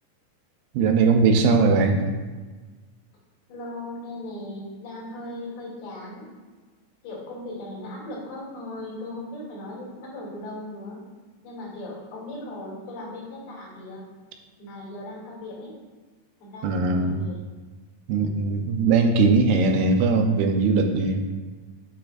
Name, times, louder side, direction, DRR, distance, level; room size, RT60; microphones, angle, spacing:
voice 1, 0.7-2.0 16.6-17.3 18.1-21.2, right 4 dB, 80° right, 4 dB, 2.4 m, -20 dB
voice 2, 3.5-6.3 7.0-11.0 11.4-14.0 14.6-15.7 16.4-17.4 18.1-18.6, left 1 dB, 70° left, -5 dB, 4.2 m, -38 dB
9.3 x 7.0 x 2.5 m, 1.3 s
omnidirectional pair, 4.6 m